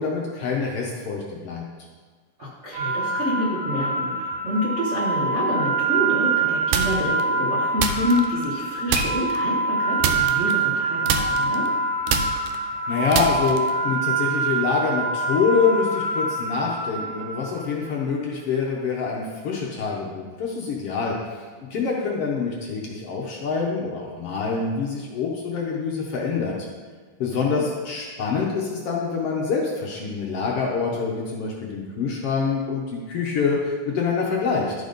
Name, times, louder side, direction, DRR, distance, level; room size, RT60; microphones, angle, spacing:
voice 1, 0.0-1.6 12.9-21.4 21.7-26.6 27.2-34.7, left 5 dB, 65° left, -2 dB, 1.6 m, -25 dB
voice 2, 2.4-11.7 27.4-27.6, equal, 60° right, -6 dB, 0.7 m, -27 dB
sound 1, 2.7-17.8, right 3 dB, 45° right, 2.3 m, -25 dB
sound 2, 6.7-7.2 7.8-8.6 8.9-9.4 10.0-10.8 11.1-13.8, right 6 dB, 80° right, 1.9 m, -26 dB
12.0 x 4.0 x 5.1 m, 1.5 s
omnidirectional pair, 3.5 m